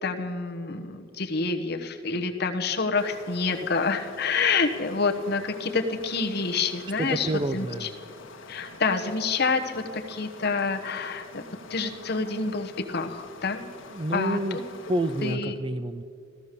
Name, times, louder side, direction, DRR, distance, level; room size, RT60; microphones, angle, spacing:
voice 1, 0.0-7.9 8.5-11.4 11.7-13.7 14.1-14.6 15.2-15.5, left 4 dB, 55° left, 4 dB, 1.1 m, -28 dB
sound 1, 3.0-15.4, left 3 dB, 80° left, 1.4 m, -46 dB
voice 2, 7.0-7.9 13.9-14.6 14.9-16.0, right 1 dB, 25° right, 13 dB, 0.5 m, -28 dB
15.0 x 14.0 x 6.8 m, 2.3 s
head